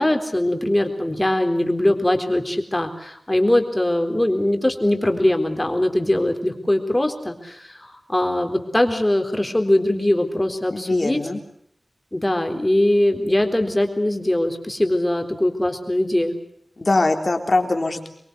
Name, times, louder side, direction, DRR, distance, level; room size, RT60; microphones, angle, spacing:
voice 1, 0.0-11.2 12.1-16.4, left 1 dB, 15° left, 5 dB, 3.9 m, -21 dB
voice 2, 10.7-11.4 16.8-18.1, left 2 dB, 45° left, 4 dB, 3.8 m, -22 dB
25.5 x 22.5 x 8.1 m, 0.69 s
wide cardioid pair, 75°, 0 cm